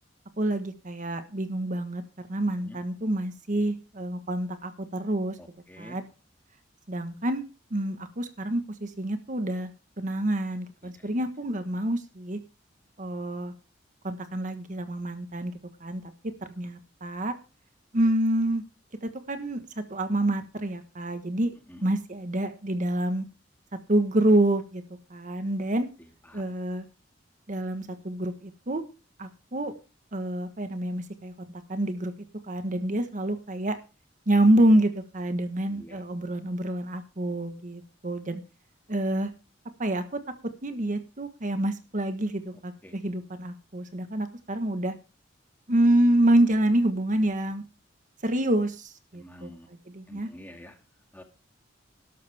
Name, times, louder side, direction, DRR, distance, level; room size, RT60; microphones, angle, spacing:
voice 1, 0.4-2.0 2.3-5.4 5.8-6.0 6.9-7.4 7.7-9.7 10.0-12.4 13.0-13.5 14.0-15.5 15.8-16.0 16.5-17.3 17.9-18.6 19.0-19.6 19.9-21.5 21.8-23.2 23.9-24.8 25.1-25.9 26.3-26.9 27.5-28.8 29.2-29.7 30.1-31.3 31.7-32.1 32.4-33.8 34.3-38.4 38.9-39.3 39.8-40.2 40.6-44.9 45.7-47.6 48.2-50.3, right 1 dB, 45° right, 9 dB, 1.4 m, -27 dB
voice 2, 35.7-36.0 42.8-42.9 49.2-49.7 50.1-50.8 51.1-51.2, left 1 dB, 10° left, 5 dB, 2.2 m, -47 dB
12.5 x 12.5 x 3.5 m, 0.33 s
head